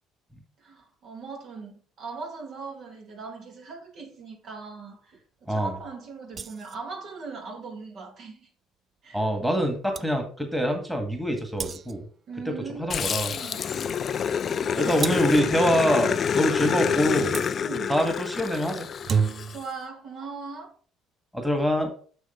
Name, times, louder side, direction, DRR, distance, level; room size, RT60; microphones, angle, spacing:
voice 1, 0.6-8.5 9.0-9.6 12.3-13.7 14.7-15.6 16.0-16.2 16.6-16.9 17.6-17.9 19.5-20.7, right 4 dB, 55° right, 2.2 m, -40 dB
sound 1, 6.3-6.8 9.5-9.6 9.9-10.1 11.6-12.1 15.0-15.4 17.3-17.5 18.8-19.7, right 6 dB, 40° right, 0.4 m, -30 dB
voice 2, 9.1-12.0 12.5-12.6 12.8-13.3 14.8-17.4 17.9-18.9 21.3-21.9, equal, 5° right, 1.9 m, -25 dB
Growling, 12.9-19.6, left 7 dB, 45° left, 0.4 m, -27 dB
6.4 x 6.3 x 3.8 m
supercardioid pair, 85°, 0 cm